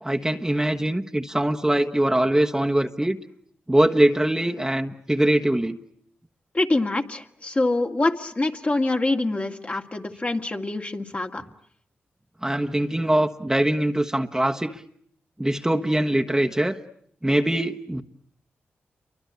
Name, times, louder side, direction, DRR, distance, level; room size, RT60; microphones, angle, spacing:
voice 1, 0.0-3.2 3.7-5.8 12.4-14.7 15.4-16.8 17.2-18.0, right 1 dB, 15° right, 3 dB, 1.3 m, -22 dB
voice 2, 6.5-11.4, left 2 dB, 35° left, 4 dB, 2.2 m, -25 dB
29.5 x 24.5 x 8.3 m, 0.67 s
cardioid pair, 50°, 4 cm